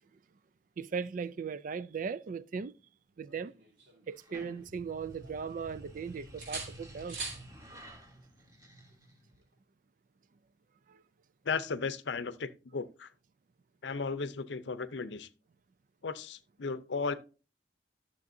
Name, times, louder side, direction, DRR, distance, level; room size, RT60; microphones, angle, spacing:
voice 1, 0.8-2.7 3.2-3.5 4.1-7.2 10.9-11.0, right 6 dB, 50° right, 0.4 m, -38 dB
sound 1, 3.3-4.8 5.2-6.0 6.4-7.5 9.3-9.5, right 3 dB, 70° right, 4.0 m, -44 dB
sound 2, 4.1-9.4, right 1 dB, 20° right, 1.5 m, -51 dB
voice 2, 11.5-13.1 13.8-15.3 16.0-17.1, left 4 dB, 85° left, 0.6 m, -35 dB
12.0 x 7.1 x 2.6 m
head